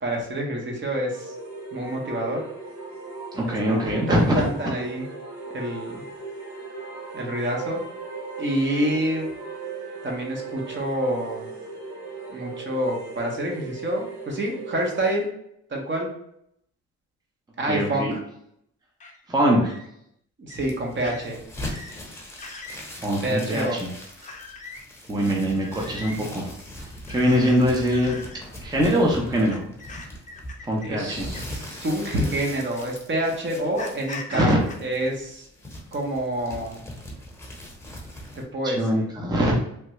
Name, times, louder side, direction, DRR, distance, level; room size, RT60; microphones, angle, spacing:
voice 1, 0.0-1.3 1.7-2.4 3.7-5.0 5.5-6.0 7.1-7.8 8.4-9.3 10.0-11.5 12.3-15.3 15.7-16.1 17.6-18.2 20.4-21.4 23.2-23.8 30.8-34.5 34.8-35.5 35.9-36.8 38.3-39.0, right 1 dB, 40° right, 0 dB, 0.9 m, -27 dB
sound 1, 1.1-15.3, right 4 dB, 70° right, 1.4 m, -38 dB
voice 2, 3.3-4.4 17.6-18.1 19.3-19.7 22.9-23.9 25.1-28.2 28.6-29.7 30.6-31.3 34.3-34.6 38.6-39.5, equal, 15° right, -2 dB, 0.7 m, -23 dB
sound 2, 19.0-19.2 19.6-19.9 20.5-20.7 21.0-21.3 21.7-22.0 22.4-22.8 23.3-23.8 24.2-24.8 25.6-26.2 27.1-27.6 27.9-28.4 29.4-31.6 32.5-32.6 33.8-34.7, left 3 dB, 25° left, 0.6 m, -40 dB
sound 3, 20.5-38.4, left 1 dB, 10° left, 1.0 m, -40 dB
3.3 x 2.3 x 3.0 m, 0.74 s
cardioid pair, 90°, 30 cm